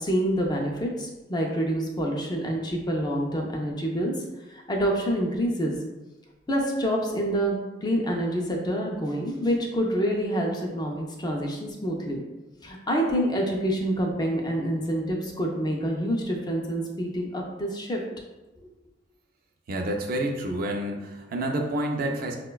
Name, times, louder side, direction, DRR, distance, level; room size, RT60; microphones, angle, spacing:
voice 1, 0.0-4.1 4.5-5.8 6.5-12.2 12.6-18.0, equal, 20° left, 0 dB, 0.4 m, -27 dB
voice 2, 19.7-22.3, right 1 dB, 50° right, 2 dB, 0.4 m, -28 dB
4.6 x 2.1 x 2.2 m, 1.1 s
head